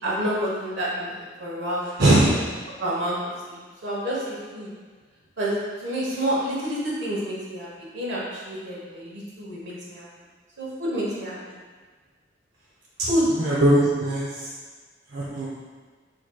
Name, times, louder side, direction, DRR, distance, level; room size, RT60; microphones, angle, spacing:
voice 1, 0.0-1.9 2.8-4.7 5.4-10.1 10.6-11.4 13.1-13.3, equal, 70° right, -6 dB, 1.2 m, -29 dB
voice 2, 2.0-2.3 13.4-14.5 15.1-15.5, right 1 dB, 55° right, -7 dB, 0.6 m, -20 dB
4.7 x 4.0 x 2.3 m, 1.4 s
head